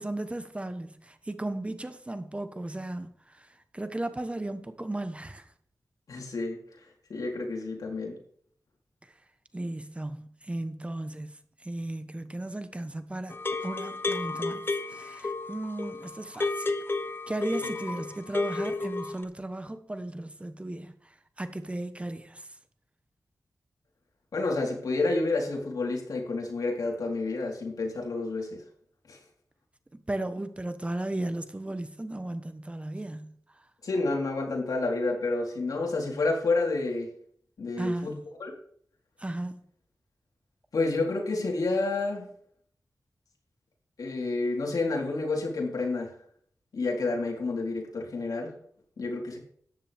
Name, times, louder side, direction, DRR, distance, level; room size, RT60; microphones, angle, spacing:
voice 1, 0.0-5.5 9.5-11.3 11.6-16.7 17.3-20.9 21.4-22.5 30.1-33.3 37.8-38.2 39.2-39.6, right 1 dB, 20° right, 1.1 m, -35 dB
voice 2, 6.1-6.6 7.1-8.1 24.3-28.6 29.1-29.2 33.8-37.1 37.6-38.5 40.7-42.3 44.0-46.1 46.7-48.5 49.0-49.4, left 3 dB, 80° left, 4.0 m, -29 dB
sound 1, 13.3-19.2, left 3 dB, 40° left, 1.1 m, -32 dB
13.5 x 10.0 x 3.5 m
wide cardioid pair, 85°, 6 cm